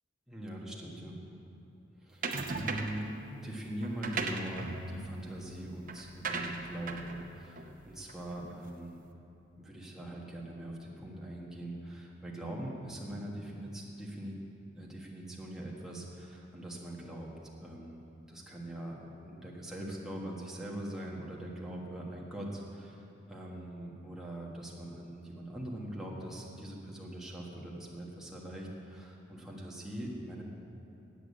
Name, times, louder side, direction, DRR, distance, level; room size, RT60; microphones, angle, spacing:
voice 1, 0.3-1.2 2.0-3.1 3.3-9.0 9.6-14.3 14.8-17.3 17.6-18.0 18.3-30.4, right 1 dB, 5° right, -4 dB, 1.5 m, -42 dB
sound 1, 2.2-3.1 3.8-8.5, right 3 dB, 45° right, 0.7 m, -38 dB
9.0 x 8.2 x 8.4 m, 2.9 s
head